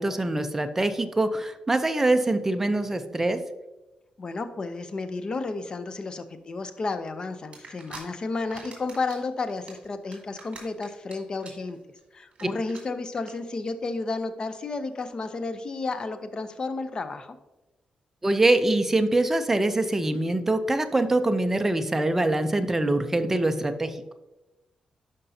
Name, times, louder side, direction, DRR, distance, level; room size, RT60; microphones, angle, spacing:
voice 1, 0.0-3.4 18.2-24.0, right 2 dB, 15° right, 7 dB, 0.5 m, -24 dB
voice 2, 4.2-17.3, left 3 dB, 35° left, 10 dB, 0.5 m, -32 dB
sound 1, 7.5-8.0 8.3-9.2 9.5-11.1 11.4-11.7 12.0-12.1 12.3-12.4 12.7-12.8 13.2-13.3, right 4 dB, 50° right, 2.5 m, -43 dB
11.5 x 5.2 x 2.7 m, 1.0 s
wide cardioid pair, 145°, 2 cm